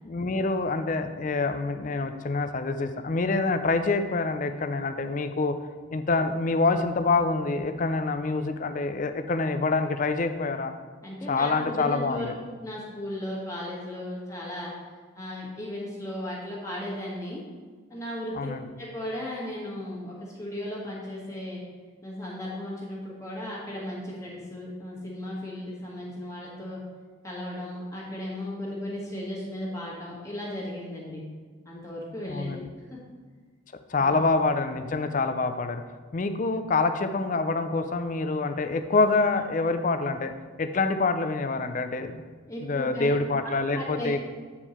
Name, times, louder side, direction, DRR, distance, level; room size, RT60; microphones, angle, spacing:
voice 1, 0.0-5.6 5.9-10.7 11.3-12.4 18.3-18.7 32.3-32.7 33.9-35.8 36.1-40.3 40.6-42.2 42.6-44.3, left 3 dB, 40° left, 9 dB, 0.4 m, -26 dB
voice 2, 11.0-12.3 12.6-14.7 15.1-17.4 17.9-18.3 18.7-21.6 22.0-26.8 27.2-31.2 31.6-32.6 32.9-33.0 34.0-34.1 42.4-43.1 43.7-44.3, left 1 dB, 15° left, -5 dB, 1.7 m, -36 dB
8.6 x 4.5 x 4.3 m, 1.5 s
head